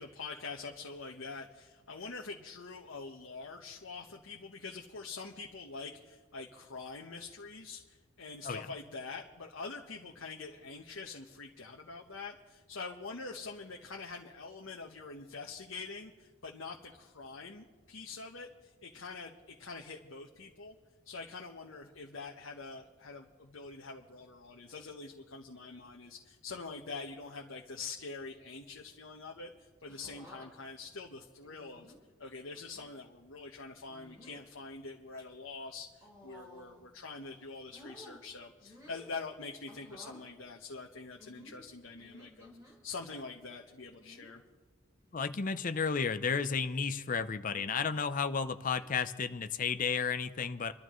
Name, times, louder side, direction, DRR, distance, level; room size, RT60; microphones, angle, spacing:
voice 1, 0.0-20.7 21.0-31.9 32.2-44.4, left 4 dB, 80° left, 1 dB, 1.0 m, -45 dB
sound 1, 29.9-30.5 31.4-32.0 32.6-32.9 33.8-34.4 35.0-35.2 36.0-36.9 37.2-38.2 38.6-39.1 39.7-40.2 41.2-42.8 44.0-44.4 45.0-45.4 45.6-45.7 47.3-47.7 48.8-49.1, left 1 dB, 15° right, 4.6 m, -55 dB
voice 2, 45.1-50.7, left 5 dB, 40° left, 10 dB, 0.6 m, -32 dB
27.0 x 12.5 x 3.1 m, 1.4 s
head